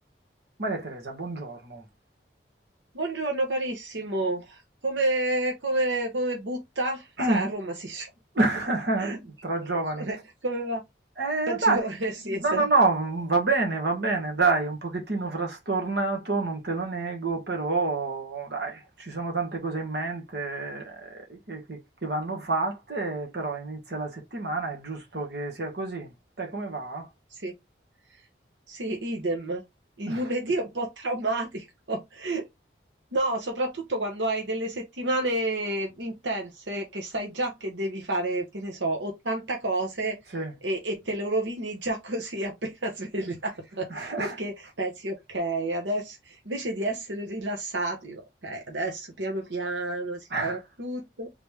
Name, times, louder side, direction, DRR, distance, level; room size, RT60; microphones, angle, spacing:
voice 1, 0.6-1.8 7.2-7.5 8.3-10.1 11.2-11.8 12.4-26.1 26.4-27.1 30.1-30.3 40.3-40.5 43.9-44.4 50.3-50.6, right 3 dB, 65° right, 1.5 m, -28 dB
voice 2, 2.9-8.1 9.0-9.2 10.0-10.2 10.4-10.8 11.5-12.6 27.3-27.5 28.7-29.6 30.0-32.4 33.1-40.2 40.6-51.3, right 1 dB, 90° right, 1.2 m, -30 dB
4.0 x 3.3 x 3.5 m
head